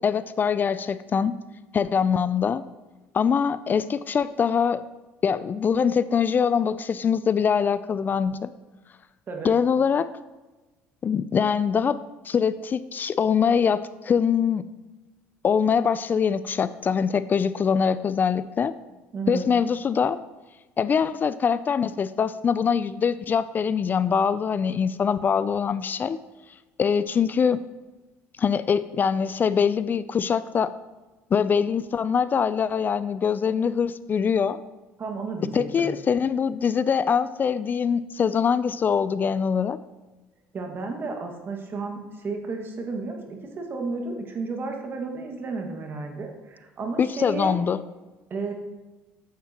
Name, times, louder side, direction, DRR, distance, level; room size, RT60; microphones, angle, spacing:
voice 1, 0.0-1.3 1.7-2.6 3.1-4.8 5.2-8.5 9.4-10.1 11.0-12.0 12.2-14.6 15.4-18.7 19.3-20.2 20.8-26.2 26.8-27.6 28.4-30.7 31.3-34.6 35.5-39.8 47.0-47.8, left 6 dB, 35° left, 15 dB, 0.3 m, -23 dB
voice 2, 9.3-9.6 19.1-19.5 35.0-35.9 40.5-47.6 48.3-48.5, right 3 dB, 40° right, 3 dB, 1.7 m, -32 dB
9.3 x 7.5 x 2.9 m, 1.2 s
supercardioid pair, 85°, 6 cm